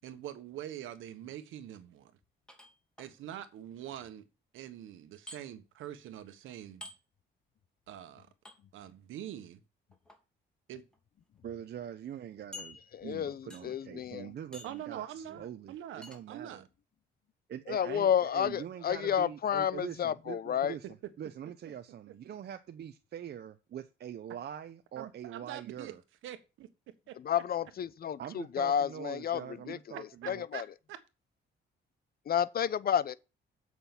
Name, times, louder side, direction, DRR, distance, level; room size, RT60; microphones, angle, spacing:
voice 1, 0.0-2.1 3.0-4.3 4.5-6.9 7.9-8.3 8.7-9.6 10.7-10.8 14.6-16.6 20.8-20.9 22.1-22.2 25.0-25.9 26.2-26.7 27.1-27.2 29.9-31.0, right 11 dB, 85° right, 1.4 m, -44 dB
sound 1, 2.5-3.1 5.3-5.4 6.8-7.0 8.4-8.6 9.9-10.2 10.9-11.0 11.4-11.5 12.5-13.1 13.5-13.8 14.5-14.9 16.0-16.2, left 2 dB, 5° left, 2.8 m, -48 dB
voice 2, 11.4-16.7 17.5-20.9 21.2-26.0 28.2-30.4, right 9 dB, 55° right, 0.8 m, -44 dB
voice 3, 12.9-14.3 17.7-20.7 27.2-30.7 32.3-33.1, left 9 dB, 50° left, 0.7 m, -31 dB
8.2 x 6.1 x 7.1 m
cardioid pair, 90°, 20 cm